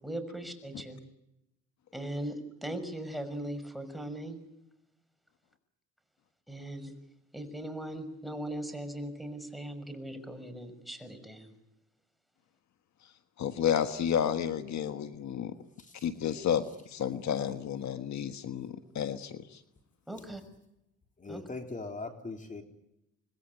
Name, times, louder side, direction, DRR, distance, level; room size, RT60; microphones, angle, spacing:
voice 1, 0.0-1.0 1.9-4.4 6.5-6.9 7.3-11.5 20.1-20.4 21.3-21.4, right 1 dB, ahead, 11 dB, 6.1 m, -39 dB
voice 2, 13.4-15.5 16.0-19.6, left 9 dB, 65° left, 9 dB, 1.5 m, -31 dB
voice 3, 21.2-22.6, left 3 dB, 25° left, 5 dB, 3.6 m, -40 dB
27.0 x 21.0 x 9.7 m, 0.85 s
cardioid pair, 90°, 30 cm